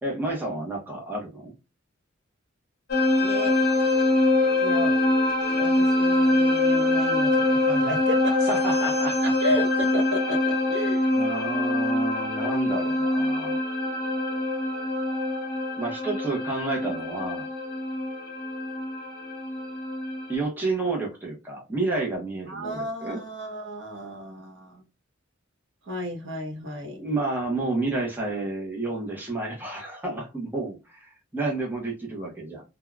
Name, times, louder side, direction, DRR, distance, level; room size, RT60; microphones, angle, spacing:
voice 1, 0.0-1.5 8.5-9.3 11.1-13.6 15.8-17.5 20.3-23.2 27.0-32.6, right 2 dB, 10° right, 0.7 m, -30 dB
sound 1, 2.9-20.3, left 2 dB, 50° left, 0.9 m, -24 dB
voice 2, 3.2-3.5 4.6-4.9 5.5-8.5 9.2-11.1 22.5-24.8 25.8-27.1, equal, 60° right, 0.9 m, -32 dB
3.4 x 2.2 x 2.2 m
head